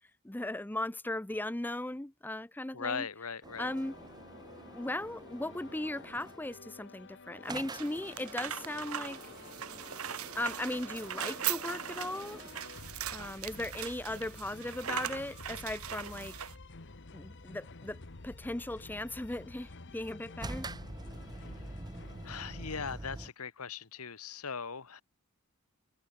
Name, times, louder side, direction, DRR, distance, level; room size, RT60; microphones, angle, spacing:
voice 1, 0.2-3.1 3.6-4.0 4.7-9.2 10.3-12.4 13.1-16.3 17.1-20.7, left 1 dB, 10° left, 0.6 m, -37 dB
voice 2, 2.7-3.7 21.3-21.5 22.2-25.0, left 5 dB, 85° left, 1.5 m, -39 dB
sound 1, 3.4-6.6 7.5-12.8 20.4-23.3, right 2 dB, 20° right, 0.8 m, -47 dB
sound 2, 3.7-22.8, left 3 dB, 60° left, 1.4 m, -51 dB
sound 3, 7.5-16.6, right 10 dB, 70° right, 1.3 m, -40 dB
head